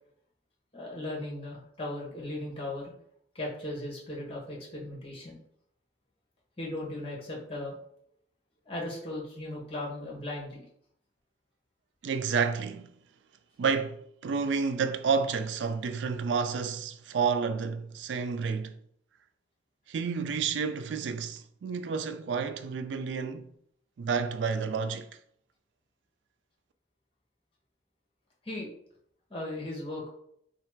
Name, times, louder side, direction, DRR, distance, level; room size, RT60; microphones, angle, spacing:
voice 1, 0.7-2.9 3.3-5.4 6.6-7.8 8.7-10.6 28.4-28.7 29.3-30.1, left 1 dB, 30° left, 1.3 m, -37 dB
voice 2, 12.0-12.9 13.6-18.8 19.9-23.5 24.0-25.1, right 5 dB, 90° right, 0.4 m, -30 dB
3.2 x 2.4 x 4.4 m
head